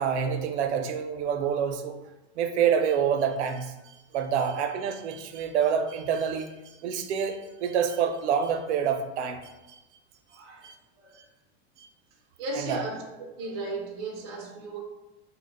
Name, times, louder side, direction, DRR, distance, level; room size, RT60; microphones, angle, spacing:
voice 1, 0.0-2.0 2.4-9.8 10.6-10.7 11.2-11.3 11.8-11.9 12.5-12.8, right 7 dB, 75° right, 6 dB, 0.5 m, -27 dB
voice 2, 10.3-11.3 12.4-13.1 13.4-14.8, right 2 dB, 25° right, -2 dB, 0.3 m, -36 dB
2.8 x 2.1 x 3.9 m, 1.0 s
supercardioid pair, 180°, 34 cm